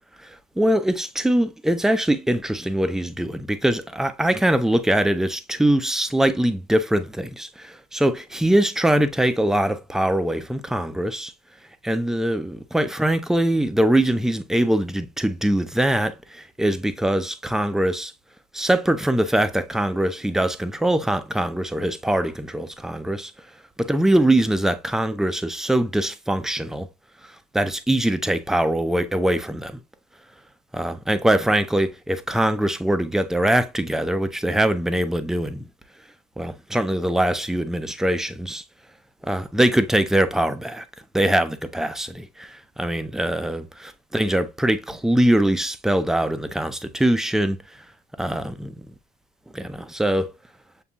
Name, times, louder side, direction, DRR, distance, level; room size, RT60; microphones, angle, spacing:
voice 1, 0.2-11.3 11.8-18.1 18.5-23.3 23.8-26.9 27.5-29.8 30.7-35.6 36.4-38.6 39.2-40.8 41.1-47.6 48.2-48.7 49.5-50.3, right 1 dB, 5° right, 0.5 m, -22 dB
6.9 x 2.6 x 2.3 m
cardioid pair, 110°, 17 cm